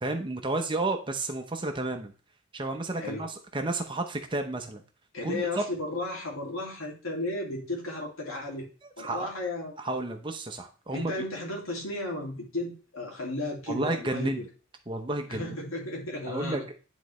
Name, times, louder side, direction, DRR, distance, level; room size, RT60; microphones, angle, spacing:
voice 1, 0.0-2.1 2.5-4.8 5.2-5.6 8.8-9.3 9.8-11.1 13.7-14.4 14.9-15.5 16.2-16.7, right 2 dB, 25° right, 5 dB, 0.8 m, -31 dB
voice 2, 5.1-8.7 9.0-9.7 10.9-14.4 15.3-16.7, left 2 dB, 75° left, 0 dB, 2.5 m, -34 dB
10.0 x 4.0 x 3.1 m, 0.37 s
head